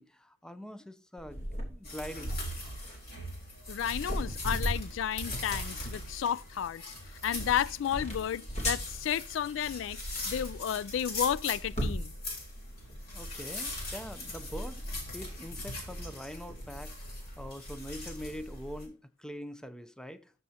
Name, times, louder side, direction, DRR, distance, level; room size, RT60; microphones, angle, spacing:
voice 1, 0.0-2.4 13.1-14.9 15.1-17.1 17.4-20.3, equal, 5° left, 0.6 m, -43 dB
sound 1, 1.2-16.9, equal, 35° left, 2.9 m, -41 dB
sound 2, 1.8-18.8, left 1 dB, 50° left, 3.6 m, -40 dB
voice 2, 3.7-6.9 7.2-10.0 10.3-12.1, left 9 dB, 75° left, 0.3 m, -32 dB
13.5 x 6.8 x 2.8 m
head